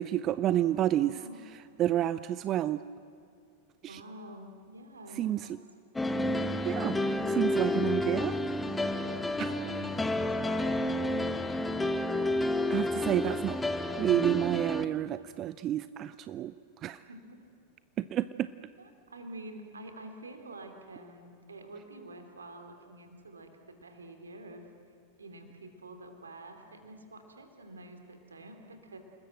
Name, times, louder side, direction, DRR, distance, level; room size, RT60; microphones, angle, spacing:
voice 1, 0.0-1.1 1.8-2.8 3.8-4.0 5.2-5.4 6.7-7.0 7.3-8.4 9.4-9.5 12.7-13.6 14.0-16.5 16.8-17.0 18.0-18.5, right 12 dB, 30° right, 15 dB, 0.5 m, -29 dB
voice 2, 0.5-1.4 3.9-5.6 9.1-11.3 17.1-17.4 18.8-24.7 25.2-29.0, right 1 dB, 75° right, 6 dB, 3.3 m, -48 dB
sound 1, 6.0-14.9, left 1 dB, 10° left, 1.2 m, -30 dB
29.0 x 20.0 x 7.9 m, 2.4 s
figure-of-eight pair, 90°, 0 cm